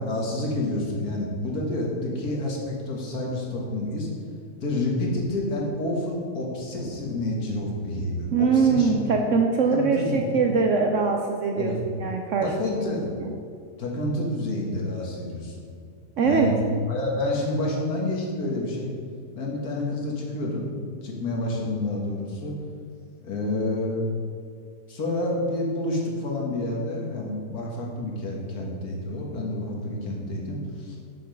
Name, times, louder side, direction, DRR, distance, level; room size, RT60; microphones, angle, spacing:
voice 1, 0.0-4.1 4.6-9.0 9.7-10.3 11.6-11.8 12.4-13.1 13.8-15.6 16.2-16.5 16.9-18.9 19.3-20.7 21.0-22.6 23.2-24.0 24.9-31.0, left 1 dB, 65° left, -2 dB, 1.9 m, -29 dB
voice 2, 8.3-11.7 12.0-12.5 16.2-16.5, right 5 dB, 65° right, 2 dB, 0.8 m, -22 dB
6.8 x 6.3 x 5.2 m, 2.3 s
omnidirectional pair, 1.8 m